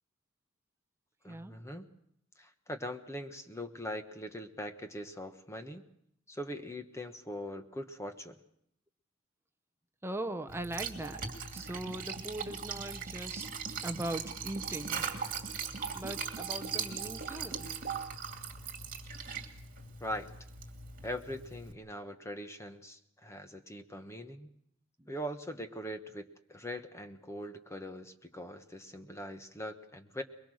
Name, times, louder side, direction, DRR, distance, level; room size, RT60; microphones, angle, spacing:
voice 1, 1.2-1.9 2.4-5.8 6.3-8.4 20.0-20.3 21.0-24.5 25.1-30.2, equal, 15° left, 7 dB, 1.3 m, -41 dB
voice 2, 10.0-11.3 11.5-13.5 13.8-15.0 15.9-17.7 25.0-25.1, right 1 dB, 10° right, 7 dB, 0.8 m, -40 dB
Liquid, 10.5-21.7, right 6 dB, 40° right, 2.5 m, -39 dB
22.5 x 22.5 x 6.4 m, 0.72 s
head